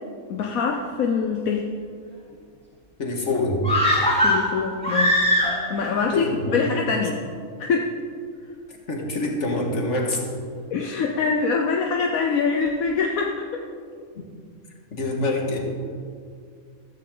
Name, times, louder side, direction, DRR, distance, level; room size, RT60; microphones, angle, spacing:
voice 1, 0.3-1.7 4.2-5.2 5.7-7.2 7.6-7.9 10.7-13.6, left 5 dB, 80° left, 1 dB, 1.3 m, -24 dB
voice 2, 3.0-3.7 6.1-6.6 8.9-10.3 14.2-14.3 14.9-15.6, left 2 dB, 55° left, 0 dB, 2.2 m, -25 dB
sound 1, 3.6-5.9 6.2-6.3, left 1 dB, 5° left, 3.6 m, -21 dB
14.5 x 14.0 x 3.9 m, 2.2 s
omnidirectional pair, 1.5 m